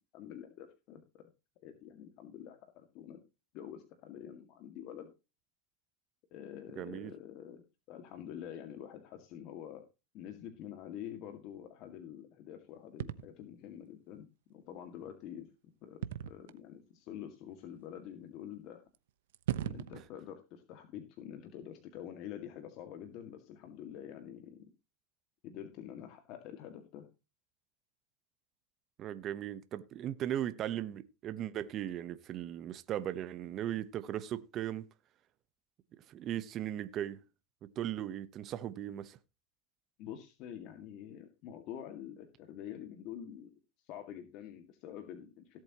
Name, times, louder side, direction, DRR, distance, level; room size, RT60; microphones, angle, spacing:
voice 1, 0.1-1.3 1.6-3.2 3.5-5.1 6.3-7.6 7.9-9.8 10.1-15.5 15.8-18.8 19.6-24.7 25.4-27.1 40.0-45.6, left 10 dB, 50° left, 2.0 m, -47 dB
voice 2, 6.8-7.1 29.0-34.9 36.1-37.2 37.6-39.2, right 11 dB, 40° right, 1.0 m, -38 dB
sound 1, 13.0-13.3 16.0-16.6 17.5-17.6 18.9-19.0 19.3-20.1, right 12 dB, 80° right, 0.9 m, -36 dB
17.5 x 7.8 x 3.0 m
supercardioid pair, 125°, 0 cm